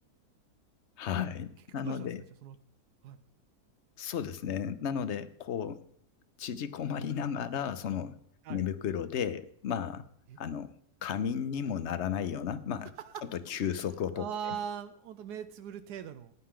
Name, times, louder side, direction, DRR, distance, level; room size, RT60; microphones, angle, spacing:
voice 1, 1.0-2.2 4.0-5.8 6.4-8.2 8.5-10.1 10.4-10.7 11.0-12.9 13.3-14.6, left 8 dB, 55° left, 13 dB, 0.9 m, -34 dB
voice 2, 1.7-2.1 2.4-2.5 3.0-3.2 8.4-8.6 10.3-10.4 13.0-13.3 14.1-16.3, right 8 dB, 90° right, 9 dB, 1.2 m, -40 dB
15.0 x 10.0 x 3.7 m, 0.67 s
omnidirectional pair, 1.7 m